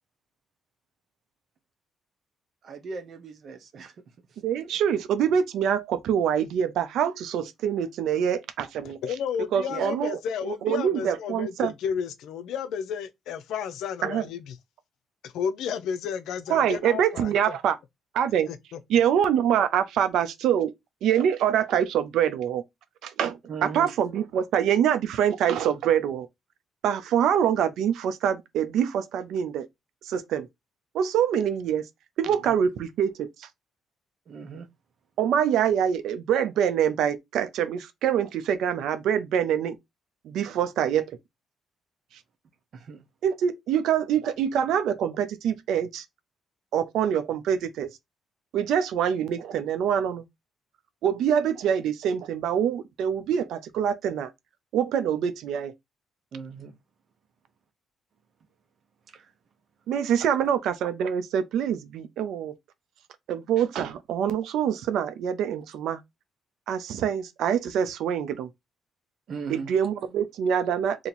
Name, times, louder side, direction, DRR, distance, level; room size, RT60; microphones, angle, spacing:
voice 1, 2.6-3.9 9.7-9.9 23.5-23.9 34.3-34.7 42.7-43.0 56.3-56.7 69.3-69.7, right 5 dB, 60° right, 0.8 m, -37 dB
voice 2, 4.4-9.0 9.5-11.7 14.0-14.3 16.5-17.8 18.1-18.5 18.9-20.7 21.0-22.6 23.0-26.3 26.8-29.7 30.0-30.5 30.9-31.8 32.2-33.5 35.2-39.8 40.2-41.2 43.2-46.0 46.7-47.9 48.5-50.2 51.0-54.3 54.7-55.7 59.9-62.6 63.3-66.0 66.7-68.5 69.5-71.1, right 9 dB, 80° right, 0.5 m, -25 dB
voice 3, 8.8-14.6 15.2-17.6 18.5-18.8, left 7 dB, 85° left, 0.5 m, -32 dB
2.8 x 2.7 x 4.0 m
cardioid pair, 90°, 0 cm